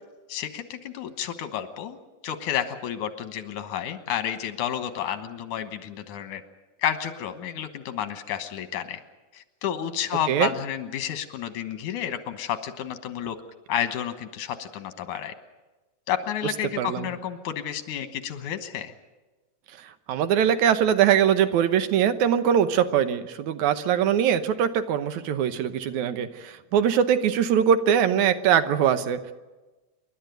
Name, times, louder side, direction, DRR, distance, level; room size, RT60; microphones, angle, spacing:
voice 1, 0.3-2.0 2.2-6.4 6.8-9.0 9.3-13.4 13.7-15.3 16.1-18.9, left 10 dB, 85° left, 9 dB, 2.7 m, -31 dB
voice 2, 16.8-17.1 20.1-29.3, right 9 dB, 80° right, 10 dB, 2.4 m, -22 dB
28.0 x 12.0 x 9.2 m, 1.2 s
omnidirectional pair, 3.4 m